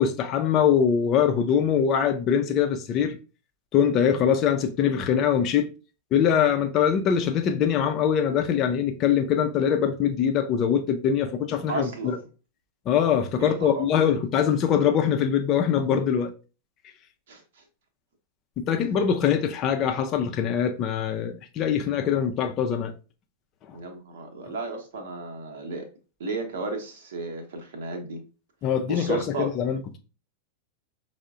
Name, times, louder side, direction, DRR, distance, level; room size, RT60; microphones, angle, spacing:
voice 1, 0.0-3.2 3.7-5.7 6.1-12.2 12.9-16.3 18.6-22.9 23.7-23.8 28.6-30.0, left 8 dB, 35° left, 0.5 m, -23 dB
voice 2, 11.7-12.2 13.4-14.1 17.3-17.6 23.7-25.9 26.2-28.2 28.8-29.5, right 3 dB, 60° right, 0.8 m, -34 dB
5.3 x 2.1 x 2.4 m
figure-of-eight pair, 90°, 0 cm